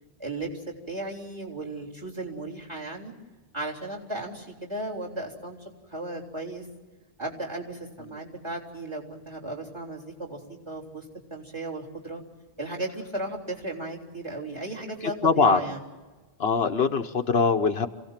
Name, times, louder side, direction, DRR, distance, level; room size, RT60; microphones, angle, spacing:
voice 1, 0.2-3.1 3.5-5.6 5.9-6.7 7.2-11.1 11.3-12.2 12.6-15.9, right 2 dB, 25° right, 0 dB, 3.7 m, -35 dB
voice 2, 15.2-15.6 16.4-17.9, left 5 dB, 65° left, 7 dB, 1.2 m, -22 dB
27.0 x 17.5 x 7.4 m, 1.2 s
omnidirectional pair, 1.1 m